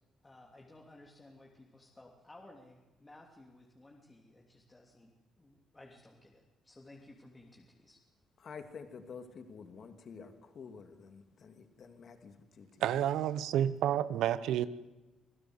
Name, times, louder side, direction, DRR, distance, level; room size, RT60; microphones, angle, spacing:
voice 1, 0.2-5.1 5.4-8.0, left 2 dB, 20° left, 3.0 m, -57 dB
voice 2, 8.4-12.8, left 5 dB, 55° left, 2.7 m, -49 dB
voice 3, 12.8-14.7, right 11 dB, 85° right, 1.0 m, -30 dB
26.5 x 16.0 x 8.1 m
cardioid pair, 90°, 0 cm